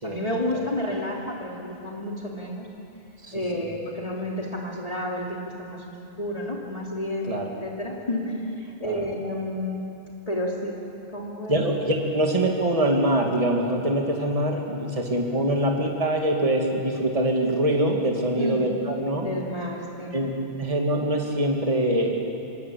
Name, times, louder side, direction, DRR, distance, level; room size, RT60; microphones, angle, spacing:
voice 1, 0.0-2.7 3.3-7.3 7.6-9.8 10.3-10.8 11.1-11.6 18.3-18.7 19.1-20.1, left 1 dB, 35° left, -3 dB, 3.2 m, -30 dB
voice 2, 3.2-3.7 7.3-7.5 8.8-9.1 11.5-19.3 20.1-20.3 20.6-22.3, right 1 dB, 30° right, 0 dB, 2.7 m, -24 dB
26.0 x 23.5 x 8.7 m, 2.8 s
omnidirectional pair, 1.1 m